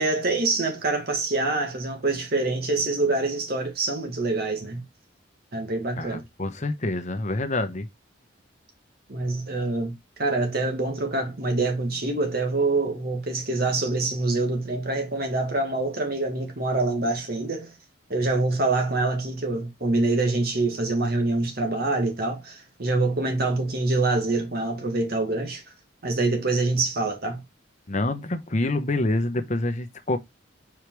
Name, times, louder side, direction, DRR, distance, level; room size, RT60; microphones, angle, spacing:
voice 1, 0.0-4.8 5.5-6.2 9.1-9.9 10.2-17.7 18.1-25.6 26.0-27.4, right 2 dB, 55° right, 1.9 m, -25 dB
voice 2, 6.0-7.9 27.9-30.2, left 2 dB, 40° left, 0.9 m, -27 dB
5.0 x 4.9 x 4.6 m
head